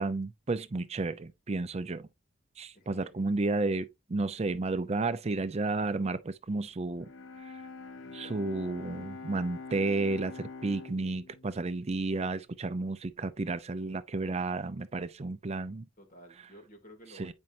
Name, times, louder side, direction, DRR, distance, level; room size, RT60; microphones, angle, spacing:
voice 1, 0.0-2.1 2.6-7.1 7.4-7.5 8.1-15.8 17.1-17.3, right 3 dB, 35° right, 0.5 m, -32 dB
voice 2, 2.7-3.3 16.0-17.3, equal, 45° left, 2.7 m, -53 dB
Bowed string instrument, 7.0-13.0, left 4 dB, 75° left, 1.1 m, -46 dB
8.9 x 5.3 x 2.6 m
head